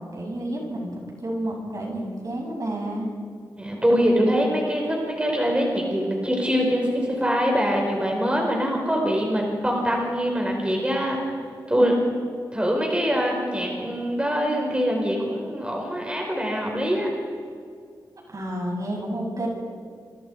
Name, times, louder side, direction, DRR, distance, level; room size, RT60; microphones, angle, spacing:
voice 1, 0.1-3.1 18.3-19.5, right 1 dB, 45° right, -1 dB, 7.4 m, -30 dB
voice 2, 3.6-11.2 11.7-12.0 12.5-17.1, equal, 15° right, 0 dB, 4.7 m, -23 dB
27.5 x 23.5 x 4.8 m, 2.2 s
cardioid pair, 65°, 8 cm